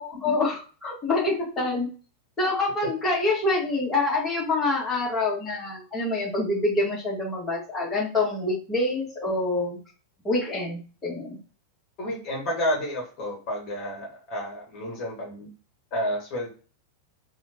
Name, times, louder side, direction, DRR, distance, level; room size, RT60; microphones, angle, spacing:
voice 1, 0.0-1.9 2.4-9.8 10.2-11.4, left 2 dB, 20° left, -5 dB, 1.9 m, -26 dB
voice 2, 12.0-15.5 15.9-16.5, equal, 40° left, -1 dB, 1.7 m, -30 dB
4.1 x 2.6 x 4.4 m, 0.38 s
figure-of-eight pair, 90°, 0 cm